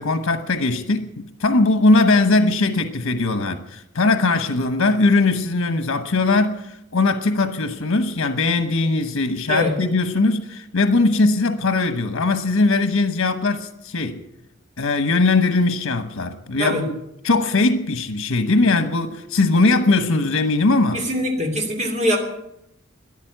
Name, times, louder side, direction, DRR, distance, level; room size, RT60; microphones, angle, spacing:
voice 1, 0.0-14.2 14.8-16.9 17.2-21.1, left 3 dB, 85° left, 1.1 m, -20 dB
voice 2, 20.9-22.2, equal, 35° right, 2.8 m, -22 dB
13.5 x 10.5 x 9.3 m
head